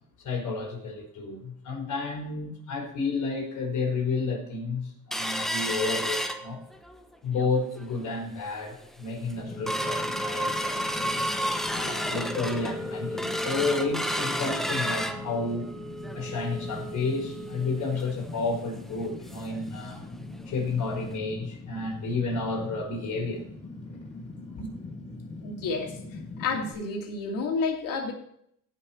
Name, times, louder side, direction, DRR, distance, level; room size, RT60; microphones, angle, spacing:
voice 1, 0.2-6.6 7.2-10.9 11.6-15.7 16.1-20.0 20.5-23.5 24.6-24.7, left 4 dB, 65° left, 5.3 m, -31 dB
sound 1, 5.1-7.0 7.4-7.5 7.8-8.2 8.7-8.8 9.1-19.6 19.9-20.0 20.4-20.6 21.1-21.2, equal, ahead, 0.8 m, -32 dB
Fire, 9.3-26.7, left 2 dB, 20° left, 4.8 m, -42 dB
voice 2, 25.4-26.0 26.4-28.1, left 4 dB, 80° left, 2.8 m, -30 dB
17.5 x 5.8 x 4.5 m
cardioid pair, 115°, 33 cm